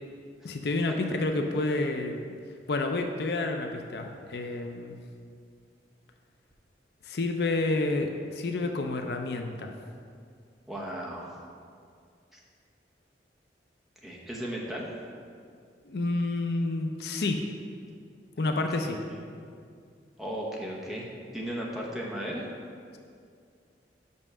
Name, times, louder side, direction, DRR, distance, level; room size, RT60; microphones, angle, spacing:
voice 1, 0.4-2.2 2.7-5.0 7.0-9.7 15.8-17.5 18.4-19.0, left 2 dB, 65° left, 5 dB, 0.5 m, -29 dB
voice 2, 10.7-11.4 12.3-12.4 14.0-14.9 18.7-19.2 20.2-21.1 21.3-22.5, equal, ahead, -4 dB, 0.9 m, -36 dB
5.5 x 5.4 x 6.1 m, 2.3 s
head